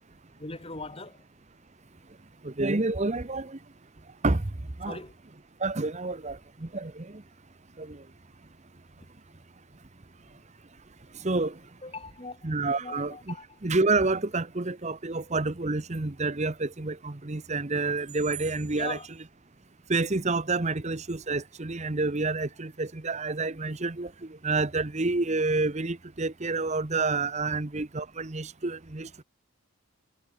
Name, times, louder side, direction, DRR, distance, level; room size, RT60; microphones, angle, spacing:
voice 1, 0.4-1.2 4.9-5.1 11.8-13.6 18.7-19.1, left 3 dB, 25° left, 2.6 m, -40 dB
voice 2, 2.4-3.6 4.2-4.4 4.8-5.0 5.6-6.4 6.7-6.9 7.8-8.0 11.2-11.5 12.4-13.3 13.6-19.0 19.9-24.1 24.4-29.2, right 3 dB, 30° right, 0.9 m, -28 dB
head